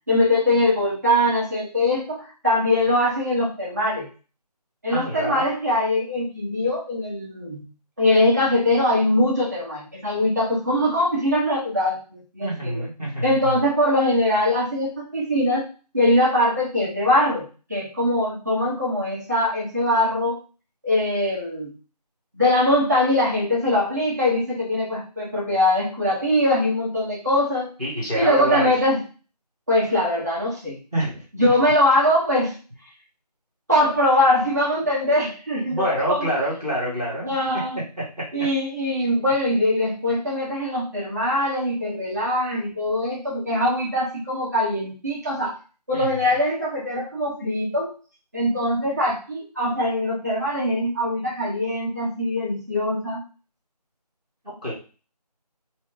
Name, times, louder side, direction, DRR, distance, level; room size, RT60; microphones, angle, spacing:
voice 1, 0.1-4.1 4.8-7.6 8.0-12.8 13.2-15.7 15.9-20.4 20.8-21.7 22.3-27.7 28.1-29.0 29.7-30.8 31.3-32.5 33.7-36.3 37.3-37.8 38.3-45.6 45.9-47.9 48.3-53.2, left 1 dB, 25° right, -6 dB, 1.0 m, -22 dB
voice 2, 4.9-5.4 12.4-13.6 27.8-28.7 30.9-31.5 35.7-37.4 38.0-38.3 45.9-46.3 54.4-54.7, right 1 dB, 5° left, -23 dB, 0.9 m, -27 dB
3.4 x 2.8 x 3.5 m, 0.35 s
figure-of-eight pair, 170°, 21 cm